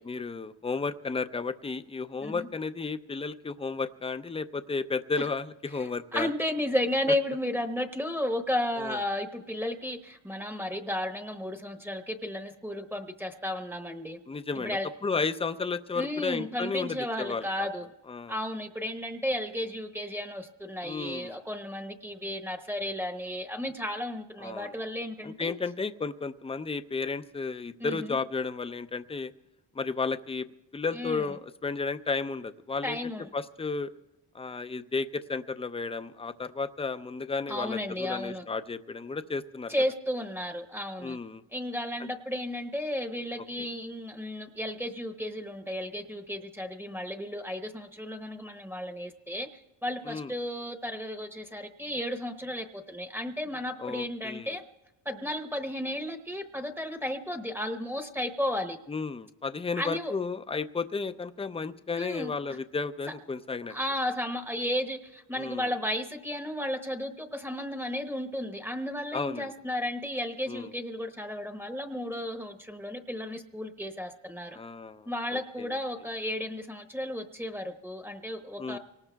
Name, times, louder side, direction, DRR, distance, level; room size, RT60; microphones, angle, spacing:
voice 1, 0.1-6.3 8.8-9.0 14.3-17.7 18.1-18.4 20.8-21.4 24.4-24.7 25.2-29.3 29.7-30.5 30.7-33.0 33.3-33.9 34.3-39.7 41.0-41.4 50.1-50.3 53.8-54.6 58.9-63.7 65.4-65.7 69.1-69.5 70.5-70.7 74.5-75.8 78.6-78.8, left 4 dB, 15° left, 11 dB, 0.5 m, -33 dB
voice 2, 5.8-14.2 14.5-14.9 15.9-17.9 18.3-25.6 27.8-28.2 30.9-31.3 32.8-33.3 37.5-38.4 39.7-41.2 41.5-49.5 49.8-54.6 55.0-58.8 59.8-60.1 61.9-62.3 63.7-74.6 75.1-78.8, left 1 dB, 5° right, 6 dB, 1.0 m, -33 dB
25.5 x 19.0 x 2.3 m, 0.97 s
cardioid pair, 85°, 44 cm